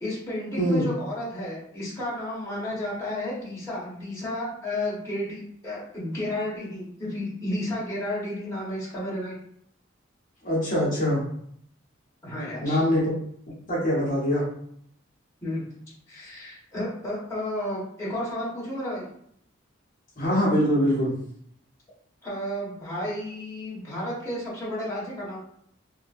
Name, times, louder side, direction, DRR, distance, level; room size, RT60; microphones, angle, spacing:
voice 1, 0.0-9.3 12.2-12.8 15.4-15.6 16.1-19.1 22.2-25.4, left 1 dB, 15° left, -7 dB, 1.1 m, -32 dB
voice 2, 10.4-11.2 12.6-13.1 13.7-14.4 20.2-21.1, equal, 40° left, -7 dB, 0.9 m, -23 dB
2.8 x 2.6 x 2.5 m, 0.67 s
head